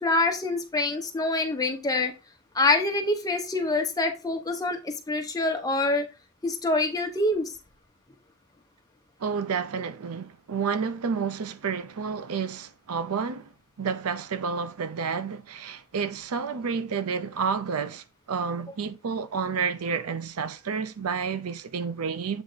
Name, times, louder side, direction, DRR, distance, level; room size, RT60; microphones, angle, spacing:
voice 1, 0.0-2.1 2.5-6.0 6.4-7.5, left 2 dB, 15° left, 1.1 m, -25 dB
voice 2, 9.2-13.5 13.8-22.4, right 5 dB, 80° right, 0.6 m, -30 dB
7.9 x 3.4 x 4.0 m
head